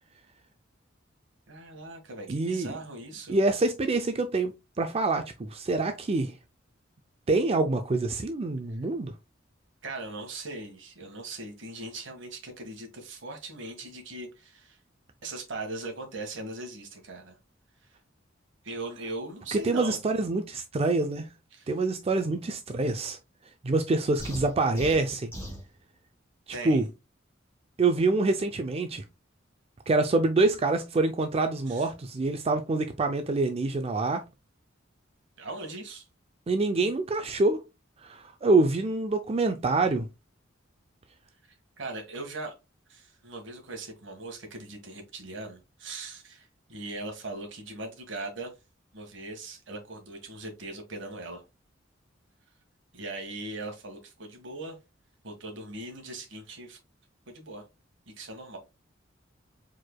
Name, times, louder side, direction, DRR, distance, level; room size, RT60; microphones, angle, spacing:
voice 1, 1.5-3.4 9.8-14.8 15.2-17.4 18.6-20.0 21.5-21.7 26.5-26.9 30.1-30.2 31.7-31.9 35.4-36.0 41.8-42.5 42.9-48.5 48.9-51.4 52.9-54.8 55.2-56.8 57.3-57.6 58.1-58.6, right 2 dB, 70° right, 1.6 m, -39 dB
voice 2, 2.3-2.7 3.3-6.3 7.3-9.1 19.5-21.3 21.7-23.2 23.6-25.3 26.6-26.8 27.8-29.0 29.9-34.2 36.5-37.6 38.0-40.1, right 3 dB, 30° right, 0.4 m, -26 dB
sound 1, 24.2-25.7, equal, 10° left, 2.8 m, -38 dB
4.7 x 4.5 x 2.2 m
head